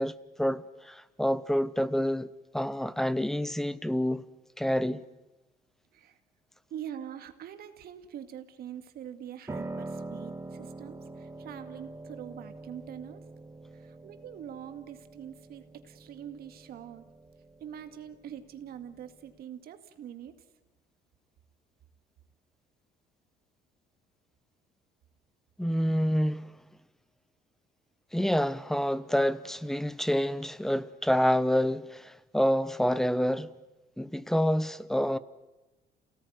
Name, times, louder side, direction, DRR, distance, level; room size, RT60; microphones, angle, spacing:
voice 1, 0.0-2.3 2.5-4.2 4.6-5.0 25.6-26.5 28.1-33.5 34.0-35.2, equal, ahead, 0.9 m, -28 dB
voice 2, 6.7-13.2 13.7-17.1 17.6-20.4, right 9 dB, 65° right, 2.2 m, -44 dB
Piano, 9.5-19.4, right 2 dB, 15° right, 1.8 m, -44 dB
29.0 x 18.5 x 9.5 m
cardioid pair, 110°, 17 cm